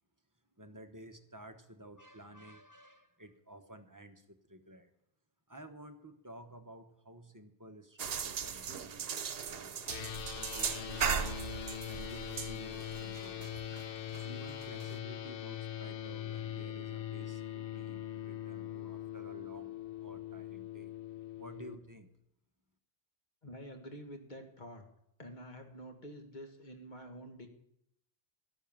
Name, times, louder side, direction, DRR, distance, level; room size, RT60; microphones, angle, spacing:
voice 1, 0.6-4.9 5.5-9.8 10.3-11.4 11.8-13.5 14.2-19.7 20.0-20.9 21.4-22.1, right 1 dB, 20° right, 6 dB, 1.0 m, -53 dB
sound 1, 8.0-15.0, right 7 dB, 70° right, 1.0 m, -38 dB
sound 2, 9.9-21.8, left 10 dB, 65° left, 0.9 m, -42 dB
voice 2, 23.4-24.8 25.2-27.5, equal, 45° left, 4 dB, 1.8 m, -48 dB
12.5 x 11.5 x 7.1 m, 0.78 s
omnidirectional pair, 1.0 m